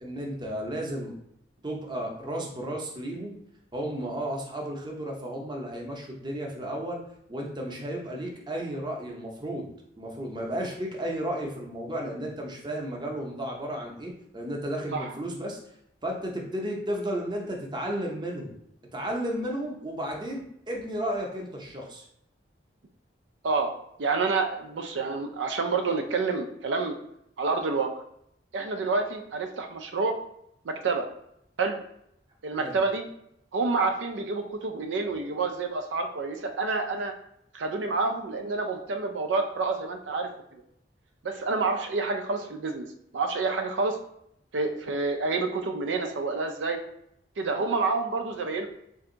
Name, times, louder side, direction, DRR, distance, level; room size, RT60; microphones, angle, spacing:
voice 1, 0.0-1.2 1.6-3.4 3.7-7.0 7.3-9.7 10.0-15.6 16.0-18.6 18.9-22.0 32.5-32.8, right 1 dB, 25° right, 0 dB, 0.7 m, -33 dB
voice 2, 24.0-26.9 27.4-27.9 28.5-30.2 30.7-31.1 31.6-31.8 32.4-33.0 33.5-37.1 37.5-40.3 41.2-42.9 43.1-44.0 44.5-46.8 47.4-48.7, right 3 dB, 85° right, 5 dB, 0.5 m, -28 dB
3.4 x 2.7 x 3.8 m, 0.74 s
head